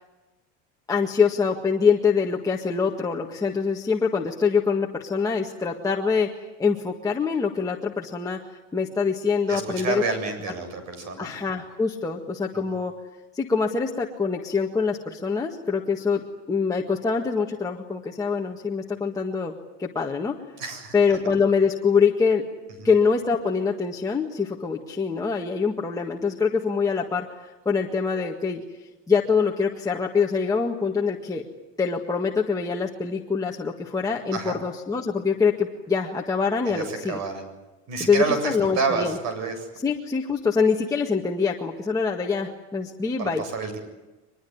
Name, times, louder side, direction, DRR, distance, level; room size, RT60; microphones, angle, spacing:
voice 1, 0.9-6.3 6.6-8.4 8.7-10.0 11.2-12.9 13.3-19.5 19.8-20.4 20.9-22.5 22.8-28.6 29.1-31.4 31.8-37.2 38.0-39.2 39.8-43.4, left 5 dB, 10° left, -1 dB, 1.8 m, -24 dB
voice 2, 9.5-11.3 20.6-21.2 22.8-22.9 34.3-34.6 36.7-37.5 37.9-39.7 43.2-43.8, right 4 dB, 50° right, 8 dB, 7.8 m, -29 dB
23.5 x 22.0 x 9.6 m, 1.1 s
cardioid pair, 150°, 34 cm